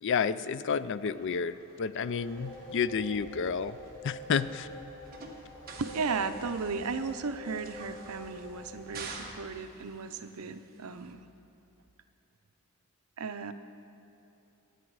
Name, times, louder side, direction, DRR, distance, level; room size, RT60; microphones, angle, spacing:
voice 1, 0.0-3.8 4.0-4.7, left 6 dB, 55° left, 15 dB, 0.4 m, -30 dB
sound 1, 1.0-11.1, right 4 dB, 45° right, 1.3 m, -50 dB
sound 2, 2.2-9.0, left 1 dB, 15° left, 4.0 m, -47 dB
voice 2, 5.8-11.2 13.2-13.5, right 4 dB, 85° right, 9 dB, 0.6 m, -35 dB
23.0 x 9.0 x 4.8 m, 2.9 s
head